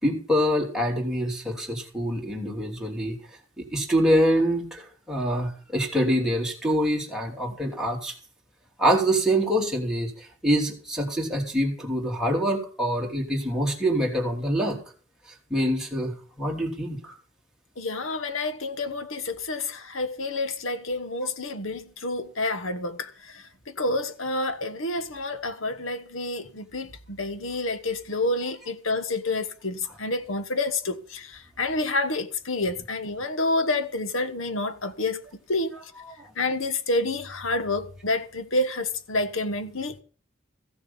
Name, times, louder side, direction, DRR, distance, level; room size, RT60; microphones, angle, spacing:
voice 1, 0.0-3.2 3.6-8.1 8.8-14.8 15.5-17.1, equal, 5° right, 3.0 m, -25 dB
voice 2, 17.8-35.2 35.5-35.8 36.4-40.0, left 2 dB, 75° left, 1.3 m, -29 dB
15.0 x 7.1 x 7.0 m
head